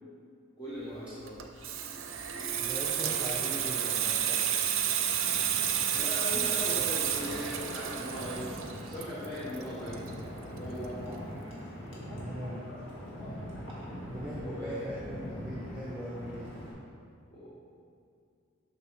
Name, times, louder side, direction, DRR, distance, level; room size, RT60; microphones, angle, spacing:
voice 1, 0.6-1.4 5.9-11.2 14.1-14.9 17.3-17.6, equal, 20° left, -9 dB, 0.9 m, -39 dB
Water tap faucet / Sink (filling or washing), 1.3-10.6 10.9-11.1, right 9 dB, 70° right, 0.5 m, -31 dB
sound 1, 2.2-7.7, right 4 dB, 40° left, 1.2 m, -52 dB
voice 2, 2.6-4.5 12.1-12.6 14.0-16.5, equal, 5° right, -8 dB, 0.6 m, -40 dB
Wind, 4.9-16.7, equal, 65° left, 1.5 m, -43 dB
6.5 x 6.0 x 3.2 m, 2.4 s
head